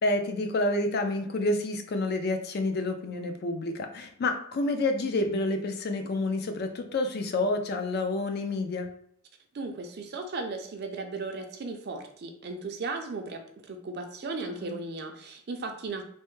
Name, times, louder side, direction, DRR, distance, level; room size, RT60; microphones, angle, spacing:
voice 1, 0.0-8.9 14.6-14.8, left 2 dB, 50° left, 6 dB, 0.4 m, -29 dB
voice 2, 9.5-16.0, right 3 dB, 50° right, 5 dB, 0.4 m, -36 dB
3.2 x 2.1 x 3.1 m, 0.65 s
head